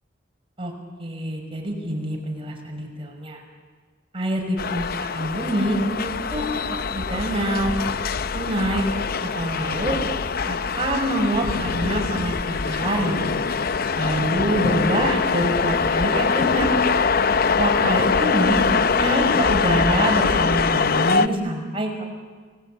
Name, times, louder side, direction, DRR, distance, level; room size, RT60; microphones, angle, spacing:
voice 1, 1.0-3.4 4.1-7.7 8.3-8.9 9.2-9.9 10.5-13.2 13.9-16.8 17.6-18.6 18.9-22.0, right 1 dB, 30° right, 2 dB, 5.8 m, -25 dB
sound 1, 4.6-21.3, left 5 dB, 55° left, 0.7 m, -23 dB
29.0 x 20.0 x 8.9 m, 1.5 s
head